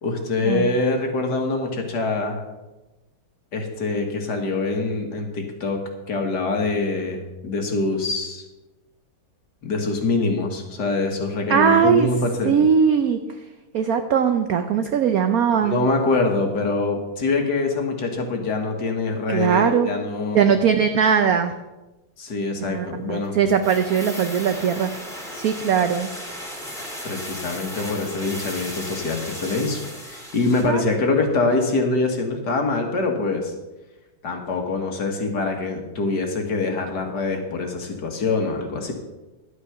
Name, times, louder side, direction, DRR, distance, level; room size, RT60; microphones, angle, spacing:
voice 1, 0.0-2.4 3.5-5.8 6.1-8.4 9.6-12.5 15.6-20.5 22.2-23.3 27.0-33.5 34.2-38.9, left 3 dB, 55° left, 3 dB, 2.0 m, -24 dB
voice 2, 11.5-12.1 12.4-13.2 13.7-15.8 19.3-19.9 20.3-21.5 22.7-24.9 25.3-26.1 30.6-30.8, right 7 dB, 75° right, 8 dB, 0.8 m, -20 dB
sound 1, 23.5-30.8 31.0-31.1, equal, ahead, 2.2 m, -35 dB
11.5 x 8.4 x 5.8 m, 1.1 s
omnidirectional pair, 2.3 m